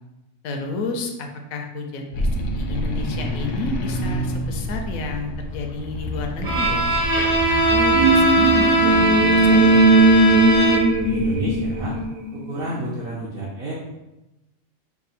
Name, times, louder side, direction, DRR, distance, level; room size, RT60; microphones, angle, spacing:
voice 1, 0.4-2.3 2.6-6.8 7.5-9.9, left 3 dB, 80° left, 4 dB, 1.0 m, -30 dB
sound 1, 2.1-12.1, left 1 dB, 65° left, 0.6 m, -29 dB
Bowed string instrument, 6.4-11.1, right 2 dB, 35° right, 1.0 m, -20 dB
sound 2, 7.9-12.8, right 2 dB, 70° right, 1.4 m, -18 dB
voice 2, 11.0-11.9 12.3-13.7, right 2 dB, 55° right, -5 dB, 0.7 m, -30 dB
3.6 x 2.3 x 4.1 m, 0.98 s
omnidirectional pair, 1.4 m